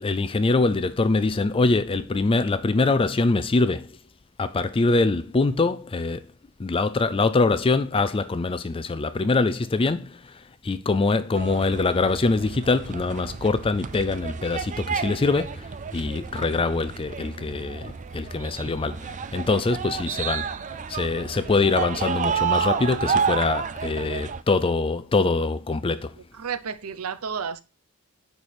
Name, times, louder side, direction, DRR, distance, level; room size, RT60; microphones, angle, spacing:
voice 1, 0.0-4.0 4.4-6.2 6.6-26.2, left 3 dB, 25° left, 0.4 m, -24 dB
sound 1, 11.3-24.4, right 6 dB, 35° right, 0.4 m, -30 dB
voice 2, 26.3-27.6, right 6 dB, 85° right, 0.7 m, -31 dB
10.5 x 4.7 x 4.3 m
head